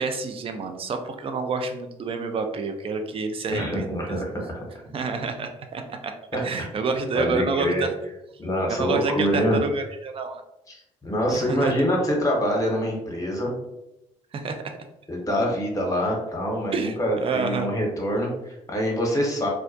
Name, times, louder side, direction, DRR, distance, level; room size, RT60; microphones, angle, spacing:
voice 1, 0.0-3.9 4.9-6.1 6.4-7.9 8.7-10.4 11.3-11.7 14.3-14.6 16.7-16.9 17.2-17.7, right 4 dB, 35° right, 6 dB, 0.4 m, -28 dB
voice 2, 3.5-4.6 6.3-6.4 7.1-7.8 8.4-9.6 10.7-13.5 15.1-19.5, equal, 20° left, -1 dB, 0.9 m, -25 dB
2.3 x 2.0 x 2.6 m, 0.87 s
figure-of-eight pair, 40°, 17 cm